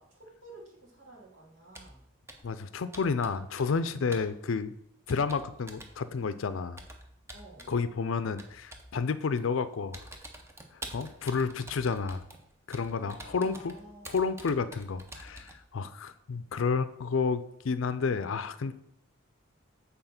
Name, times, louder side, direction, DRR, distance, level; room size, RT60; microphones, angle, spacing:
voice 1, 0.0-2.0 7.3-7.7 12.9-14.3, right 1 dB, 70° right, -3 dB, 2.5 m, -52 dB
Computer keyboard, 1.7-2.0 2.3-2.6 2.9-3.9 4.1-4.3 5.1-6.0 6.8-7.8 8.4-8.9 9.4-9.6 9.9-15.6, right 1 dB, 15° right, 0.7 m, -47 dB
voice 2, 2.4-4.7 5.1-6.8 7.7-10.1 10.7-12.2 12.7-13.7 14.1-18.7, left 5 dB, 70° left, 13 dB, 0.5 m, -31 dB
7.9 x 4.1 x 5.8 m, 0.76 s
head